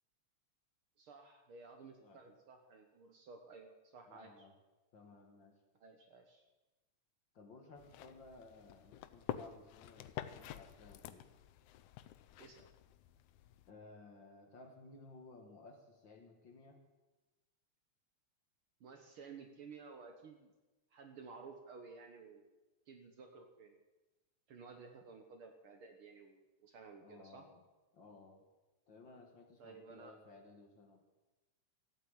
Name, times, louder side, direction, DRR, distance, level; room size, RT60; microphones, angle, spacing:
voice 1, 1.0-4.5 5.8-6.5 12.4-12.7 18.8-20.5 20.9-22.4 22.9-23.7 24.5-27.5 29.6-30.1, right 4 dB, 55° right, 5 dB, 1.7 m, -54 dB
voice 2, 4.1-4.5 4.9-5.5 7.3-11.3 13.7-16.8 27.0-27.6 27.9-28.4 28.9-31.0, left 3 dB, 45° left, 3 dB, 1.9 m, -58 dB
sound 1, 7.8-13.7, left 11 dB, 85° left, 2.1 m, -49 dB
14.5 x 8.9 x 8.9 m, 1.1 s
omnidirectional pair, 3.3 m